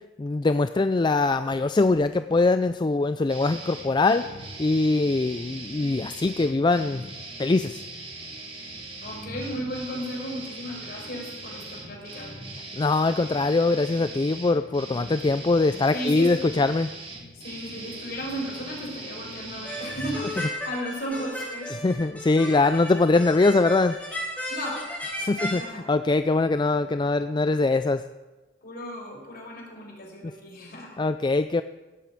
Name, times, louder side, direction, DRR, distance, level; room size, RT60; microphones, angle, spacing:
voice 1, 0.2-4.3 4.6-7.0 7.4-7.8 12.7-16.9 21.7-23.9 25.2-28.0 31.0-31.6, left 3 dB, 25° left, 11 dB, 0.4 m, -22 dB
sound 1, 3.3-20.5, right 2 dB, 30° right, 3.3 m, -40 dB
voice 2, 9.0-12.3 15.9-16.5 17.3-21.7 24.5-24.9 25.3-25.9 28.6-31.0, equal, 50° left, -1 dB, 5.4 m, -35 dB
sound 2, 19.6-25.6, equal, 10° left, 3.9 m, -34 dB
16.5 x 8.3 x 9.1 m, 1.2 s
head